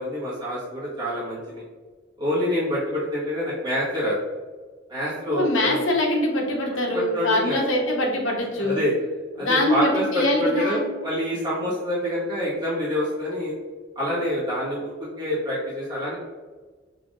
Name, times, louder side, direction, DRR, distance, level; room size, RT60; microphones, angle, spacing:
voice 1, 0.0-1.6 2.2-4.1 4.9-5.9 6.9-7.6 8.6-8.9 9.4-13.5 13.9-14.9 15.2-16.2, equal, 25° right, -9 dB, 1.5 m, -26 dB
voice 2, 5.3-8.8 9.4-10.8, left 1 dB, 85° left, -1 dB, 1.1 m, -23 dB
5.7 x 3.4 x 2.5 m, 1.4 s
head